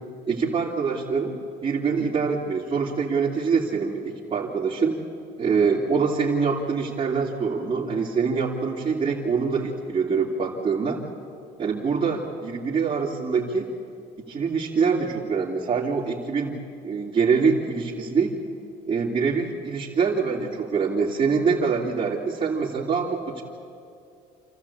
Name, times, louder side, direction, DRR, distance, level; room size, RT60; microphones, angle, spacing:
voice 1, 0.3-1.4 1.6-5.0 5.4-11.0 11.6-13.7 14.3-16.6 16.8-18.4 18.9-23.4, right 5 dB, 40° right, -6 dB, 3.1 m, -24 dB
28.0 x 14.0 x 8.7 m, 2.5 s
cardioid pair, 110°, 17 cm